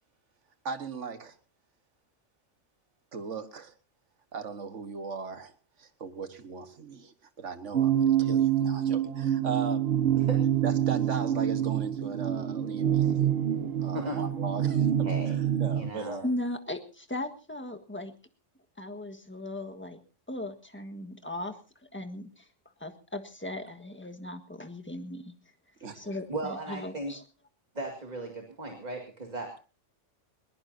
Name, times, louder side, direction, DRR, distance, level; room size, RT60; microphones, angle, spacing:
voice 1, 0.6-1.4 3.1-3.7 4.3-5.5 5.8-9.9 10.6-13.3 13.8-15.3 15.6-16.3 25.8-26.1, right 5 dB, 75° right, 1.7 m, -38 dB
sound 1, 7.7-15.9, right 10 dB, 55° right, 1.1 m, -26 dB
voice 2, 15.0-15.4 15.7-16.2 26.3-27.1 27.7-29.6, right 2 dB, 35° right, 2.3 m, -36 dB
voice 3, 16.2-18.1 18.8-20.0 20.3-21.6 21.9-22.5 22.8-25.3 25.9-27.2, left 1 dB, 10° left, 1.5 m, -37 dB
21.0 x 20.0 x 2.8 m
omnidirectional pair, 1.3 m